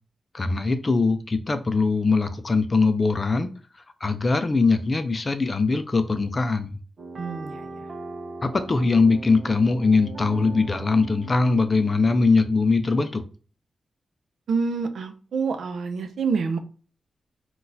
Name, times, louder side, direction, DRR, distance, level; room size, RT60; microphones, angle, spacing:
voice 1, 0.3-3.5 4.0-6.8 8.4-13.2, left 3 dB, 35° left, 9 dB, 0.4 m, -21 dB
sound 1, 7.0-12.6, right 3 dB, 50° right, 0.7 m, -40 dB
voice 2, 7.1-7.7 14.5-16.6, right 5 dB, 85° right, 7 dB, 0.5 m, -27 dB
3.9 x 2.3 x 2.6 m, 0.38 s
wide cardioid pair, 110°, 0 cm